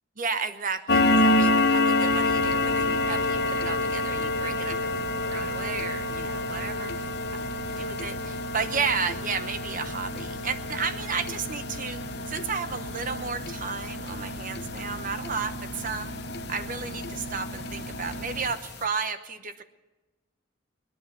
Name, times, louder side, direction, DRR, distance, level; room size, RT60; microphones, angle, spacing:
voice 1, 0.2-12.0 12.3-16.1 16.5-19.6, right 5 dB, 45° right, 10 dB, 0.9 m, -33 dB
sound 1, 0.9-16.0 16.3-16.6 17.0-17.1 17.6-17.7 18.1-18.2 18.5-18.7, left 2 dB, 55° left, 0.8 m, -27 dB
Engine, 2.1-18.5, equal, 75° left, 2.1 m, -37 dB
20.5 x 10.0 x 6.8 m, 1.2 s
head